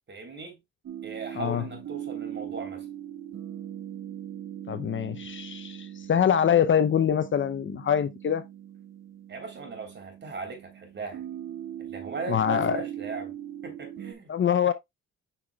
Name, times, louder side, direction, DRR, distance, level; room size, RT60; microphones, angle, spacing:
voice 1, 0.1-0.6 1.0-2.8 9.3-11.2 11.8-13.3 13.6-14.3, right 4 dB, 35° right, 3.4 m, -38 dB
sound 1, 0.8-14.1, right 10 dB, 60° right, 1.6 m, -40 dB
voice 2, 4.7-8.4 12.3-12.8 14.3-14.7, left 8 dB, 40° left, 0.6 m, -24 dB
7.8 x 5.7 x 2.2 m
cardioid pair, 90°, 30 cm